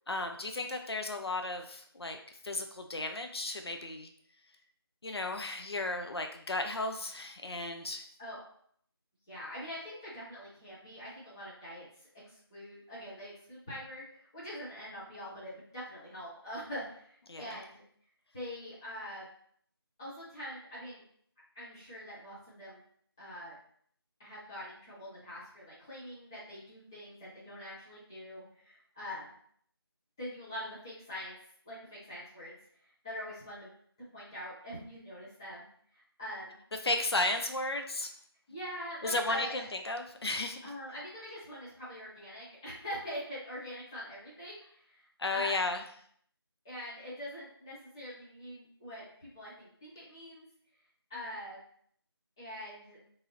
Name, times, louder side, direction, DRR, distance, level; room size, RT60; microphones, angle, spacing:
voice 1, 0.1-2.2 2.4-4.1 5.0-8.1 17.3-17.6 36.8-38.1 39.0-40.6 45.2-45.8, left 2 dB, 75° left, 5 dB, 0.5 m, -34 dB
voice 2, 9.3-12.1 12.5-17.8 18.3-19.2 20.0-21.0 21.5-22.8 23.2-23.5 24.2-29.3 30.2-31.4 31.6-32.6 33.0-33.7 34.1-35.7 35.9-36.6 38.5-39.5 40.6-45.0 45.3-45.6 46.6-50.4 51.1-51.6 52.4-53.0, equal, 10° left, -10 dB, 0.6 m, -43 dB
2.7 x 2.4 x 3.0 m, 0.63 s
figure-of-eight pair, 165°, 13 cm